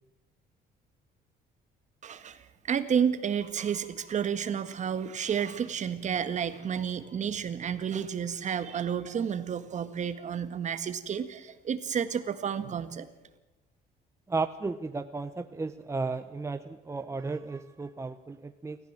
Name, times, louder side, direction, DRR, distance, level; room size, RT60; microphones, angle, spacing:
voice 1, 2.0-13.1, right 7 dB, 45° right, 11 dB, 1.8 m, -31 dB
voice 2, 14.3-18.8, right 3 dB, 15° right, 10 dB, 0.9 m, -34 dB
28.0 x 14.5 x 7.6 m, 1.0 s
cardioid pair, 110°, 17 cm